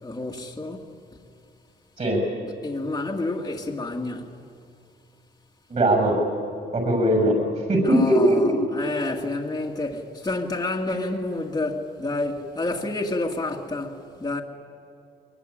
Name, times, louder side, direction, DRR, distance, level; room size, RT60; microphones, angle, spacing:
voice 1, 0.0-1.0 2.6-4.4 7.8-14.4, left 2 dB, 20° left, 2.0 m, -29 dB
voice 2, 5.7-6.2 6.7-7.3 7.7-8.4, right 1 dB, 35° right, 7.0 m, -19 dB
22.5 x 22.5 x 10.0 m
cardioid pair, 90°, 20 cm